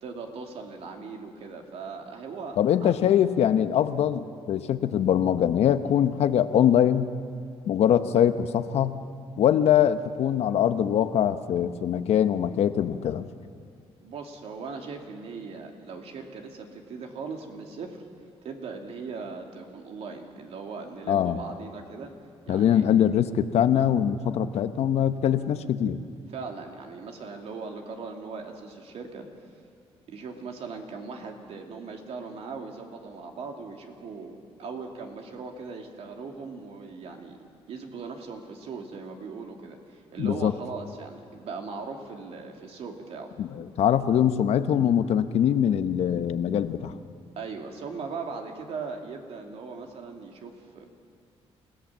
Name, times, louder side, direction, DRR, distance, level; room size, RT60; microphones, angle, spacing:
voice 1, 0.0-2.9 14.0-18.0 18.4-22.1 22.5-22.9 26.3-29.3 30.1-37.4 37.7-43.3 47.4-50.9, right 4 dB, 70° right, 3 dB, 2.8 m, -39 dB
voice 2, 2.6-7.1 7.6-9.0 9.4-13.3 21.1-21.4 22.5-26.0 40.2-40.5 43.4-47.0, left 9 dB, 75° left, 10 dB, 1.0 m, -23 dB
29.0 x 17.0 x 7.5 m, 2.3 s
cardioid pair, 105°, 11 cm